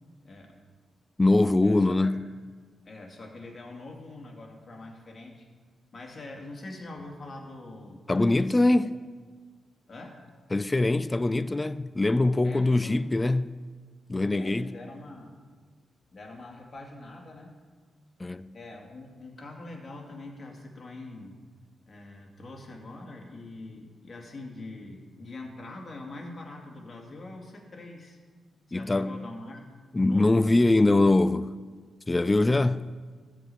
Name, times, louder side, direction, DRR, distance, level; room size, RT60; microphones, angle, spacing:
voice 1, 0.2-0.6 1.6-2.1 2.8-5.5 5.9-8.7 9.9-10.2 12.4-13.1 14.4-15.4 16.1-17.6 18.5-21.4 21.9-28.2 28.7-30.4, left 2 dB, 45° left, 2.5 m, -44 dB
voice 2, 1.2-2.2 8.1-9.0 10.5-13.6 14.1-14.7 18.2-18.5 28.7-29.2 29.9-31.5 32.1-32.9, left 2 dB, 25° left, 0.4 m, -23 dB
14.0 x 5.1 x 8.6 m
cardioid pair, 60°, 0 cm